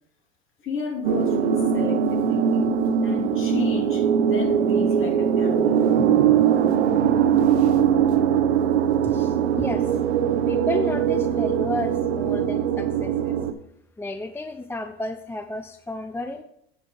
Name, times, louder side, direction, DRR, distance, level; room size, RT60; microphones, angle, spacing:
voice 1, 0.6-5.9, left 5 dB, 40° left, 0 dB, 2.5 m, -34 dB
sound 1, 1.0-13.5, right 8 dB, 75° right, 0.9 m, -21 dB
voice 2, 9.0-10.0 10.5-13.4 14.0-16.4, left 2 dB, 5° left, 8 dB, 0.5 m, -32 dB
10.0 x 3.6 x 7.0 m, 0.73 s
hypercardioid pair, 85°, 33 cm